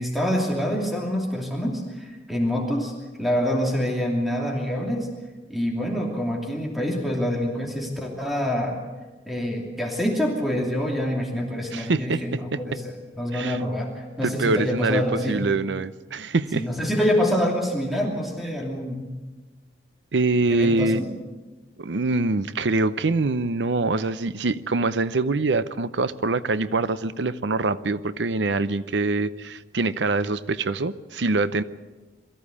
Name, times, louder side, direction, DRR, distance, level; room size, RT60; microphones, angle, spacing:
voice 1, 0.0-2.9 3.2-5.1 5.5-8.8 9.3-15.4 16.5-19.0 20.5-21.0, equal, ahead, 0 dB, 2.8 m, -26 dB
voice 2, 11.7-12.6 13.3-13.6 14.2-16.7 20.1-21.0 21.8-31.6, right 3 dB, 90° right, 15 dB, 0.7 m, -24 dB
22.5 x 14.5 x 8.5 m, 1.2 s
head